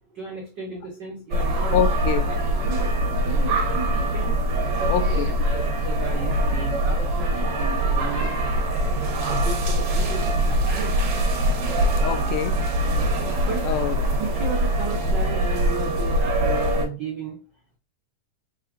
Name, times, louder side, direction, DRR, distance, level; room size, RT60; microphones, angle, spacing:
voice 1, 0.1-1.8 2.2-2.9 3.2-4.3 4.8-8.3 9.1-10.9 13.5-13.6 14.2-17.4, right 3 dB, 85° right, 0.9 m, -35 dB
sound 1, 1.3-16.9, right 1 dB, 65° right, 1.1 m, -23 dB
voice 2, 1.7-2.3 4.8-5.4 12.0-12.5 13.7-14.1, left 10 dB, 85° left, 2.1 m, -25 dB
4.7 x 3.8 x 2.5 m
omnidirectional pair, 3.6 m